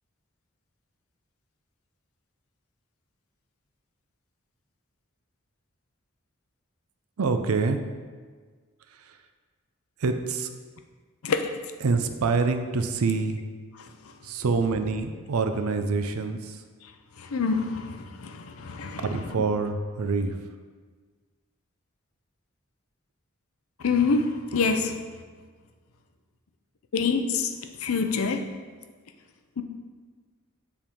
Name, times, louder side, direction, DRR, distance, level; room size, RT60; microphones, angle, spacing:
voice 1, 7.2-7.8 9.1-9.2 10.0-10.5 11.8-13.4 14.2-16.6 19.1-20.5, right 4 dB, 90° right, 8 dB, 0.5 m, -26 dB
voice 2, 13.8-14.1 16.8-16.9 17.2-19.3 23.8-25.0 26.9-28.4 29.6-29.7, left 4 dB, 80° left, 6 dB, 0.5 m, -27 dB
7.1 x 3.5 x 4.4 m, 1.5 s
head